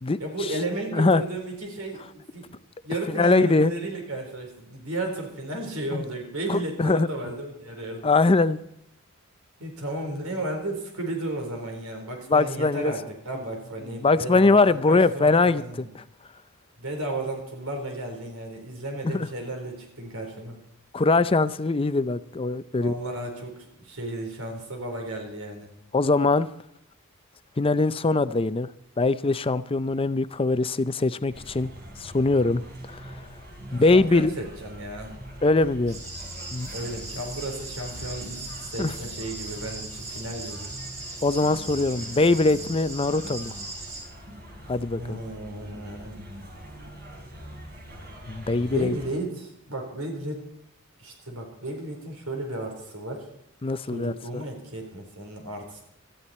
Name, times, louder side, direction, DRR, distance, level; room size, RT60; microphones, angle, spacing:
voice 1, 0.2-2.5 2.8-8.1 9.6-15.9 16.8-20.6 22.7-23.5 23.8-25.7 33.9-35.2 36.7-40.7 44.9-46.2 48.5-50.4 51.0-53.3 53.8-55.8, right 2 dB, 80° right, 3 dB, 4.1 m, -34 dB
voice 2, 3.1-3.7 5.9-6.0 6.5-7.1 8.0-8.6 12.3-12.9 14.0-15.6 19.0-19.3 20.9-22.9 25.9-26.5 27.6-28.7 29.0-31.7 32.0-32.6 32.9-33.0 33.7-34.3 35.4-36.0 36.5-36.7 38.8-38.9 41.2-43.5 44.7-45.2 48.3-48.9 53.6-54.4, left 3 dB, 25° left, 14 dB, 0.5 m, -22 dB
sound 1, 31.3-49.1, equal, 45° right, 4.0 m, -43 dB
sound 2, 35.9-44.0, right 3 dB, 30° right, 7.1 m, -39 dB
18.0 x 14.0 x 4.3 m, 0.75 s
head